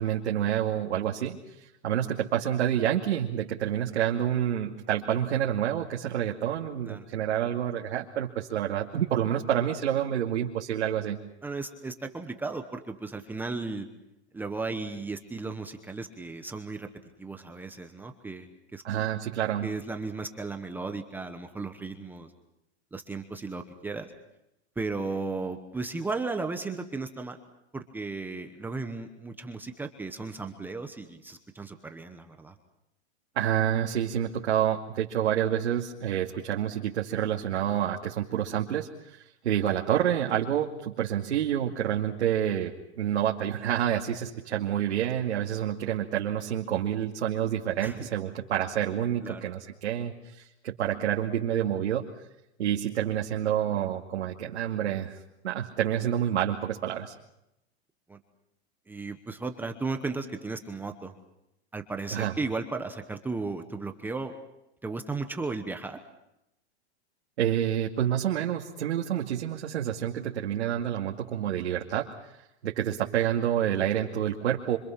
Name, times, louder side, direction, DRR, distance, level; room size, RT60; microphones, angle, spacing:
voice 1, 0.0-1.4 1.8-11.2 18.8-19.7 33.4-52.1 52.6-55.2 55.4-57.1 62.1-62.3 67.4-72.1 72.6-74.8, right 10 dB, 85° right, -1 dB, 2.4 m, -28 dB
voice 2, 11.4-13.9 14.3-16.9 17.2-18.8 19.6-22.3 22.9-24.1 24.8-27.4 27.7-32.5 47.8-48.1 49.2-49.5 58.1-58.2 58.9-61.1 61.7-64.3 64.8-66.0, right 3 dB, 5° right, 5 dB, 1.1 m, -35 dB
26.0 x 25.5 x 5.9 m, 0.86 s
supercardioid pair, 160°, 33 cm